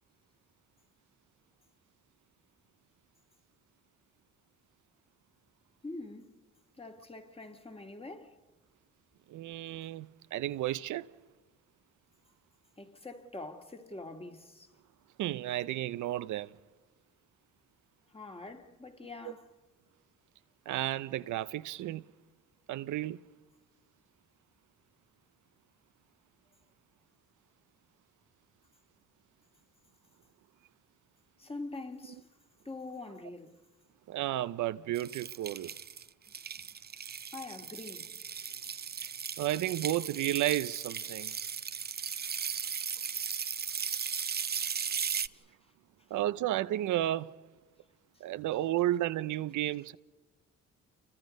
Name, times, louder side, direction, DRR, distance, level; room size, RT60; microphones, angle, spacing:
voice 1, 5.8-6.4 6.8-8.4 12.8-14.7 18.1-19.5 31.4-32.3 32.6-33.6 37.3-38.1 41.8-41.9 43.5-43.6 44.8-45.6 48.1-48.2, left 2 dB, 20° left, 2.2 m, -45 dB
voice 2, 9.3-11.1 15.2-16.5 20.7-22.0 22.7-23.2 34.1-35.7 39.0-39.1 39.4-41.3 46.1-47.3 48.2-50.0, right 14 dB, 75° right, 0.7 m, -32 dB
sound 1, 35.0-45.3, right 7 dB, 30° right, 0.7 m, -37 dB
29.0 x 24.5 x 5.3 m
cardioid pair, 90°, 30 cm